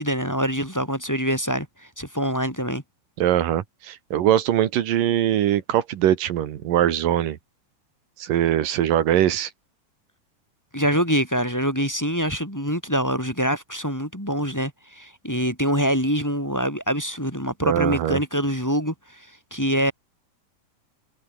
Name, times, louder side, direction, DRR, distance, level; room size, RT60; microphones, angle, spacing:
voice 1, 0.0-1.7 2.0-2.8 10.7-19.9, equal, 5° left, 4.6 m, -25 dB
voice 2, 3.2-7.4 8.2-9.5 17.6-18.2, right 11 dB, 85° right, 3.2 m, -22 dB
omnidirectional pair, 3.9 m